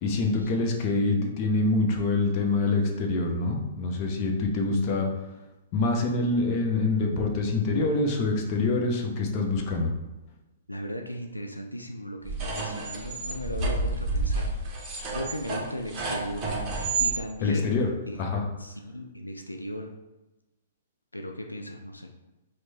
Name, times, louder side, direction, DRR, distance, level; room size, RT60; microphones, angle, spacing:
voice 1, 0.0-5.1 5.7-9.9 17.4-17.9 18.2-18.4, left 3 dB, 35° left, 1 dB, 0.8 m, -25 dB
voice 2, 10.7-14.8 15.1-16.5 17.0-17.8 18.1-18.2 18.6-19.9 21.1-22.1, equal, 90° left, 3 dB, 0.4 m, -37 dB
sound 1, 12.3-17.2, right 3 dB, 25° right, 0.8 m, -30 dB
4.6 x 2.2 x 4.1 m, 1.0 s
figure-of-eight pair, 115°, 0 cm